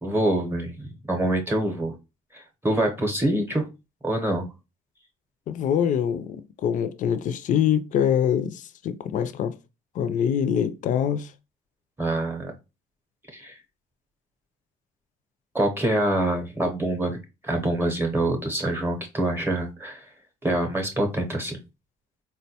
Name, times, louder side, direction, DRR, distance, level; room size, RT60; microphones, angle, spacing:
voice 1, 0.0-1.9 2.3-3.7 4.0-4.5 12.0-12.5 13.3-13.6 15.5-17.2 17.4-20.1 20.4-21.6, right 1 dB, 15° right, 0.7 m, -25 dB
voice 2, 5.5-9.6 10.0-11.3, left 9 dB, 50° left, 0.4 m, -24 dB
3.8 x 2.2 x 2.7 m
cardioid pair, 110°, 17 cm